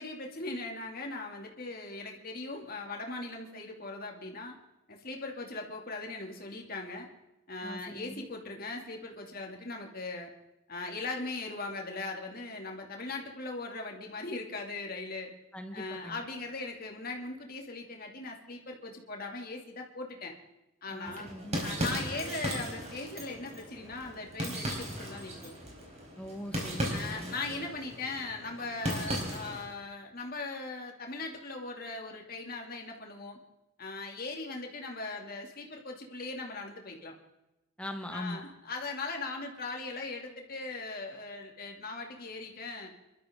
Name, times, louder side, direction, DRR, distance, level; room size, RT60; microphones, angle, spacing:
voice 1, 0.0-4.5 4.9-7.1 7.5-10.3 10.7-15.3 15.7-20.3 20.8-21.3 21.6-25.5 26.9-33.4 33.8-37.1 38.1-42.9, left 3 dB, 45° left, 1 dB, 2.6 m, -39 dB
voice 2, 7.6-8.3 15.5-16.2 20.9-21.6 26.2-27.3 37.8-38.4, left 1 dB, 5° left, 5 dB, 1.3 m, -41 dB
sound 1, 21.0-29.7, equal, 30° right, 4.4 m, -37 dB
27.0 x 13.0 x 3.8 m, 0.97 s
head